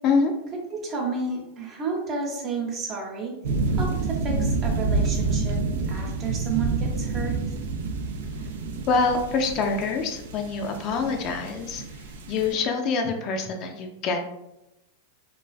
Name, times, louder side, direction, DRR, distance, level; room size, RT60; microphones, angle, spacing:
voice 1, 0.7-3.4 3.7-5.6 5.9-7.5, right 4 dB, 35° right, 0 dB, 0.6 m, -31 dB
sound 1, 3.4-12.5, right 3 dB, 75° right, 0.3 m, -28 dB
voice 2, 8.9-11.8 12.3-14.2, left 4 dB, 45° left, 3 dB, 0.3 m, -25 dB
2.4 x 2.3 x 2.3 m, 0.92 s
hypercardioid pair, 115°, 0 cm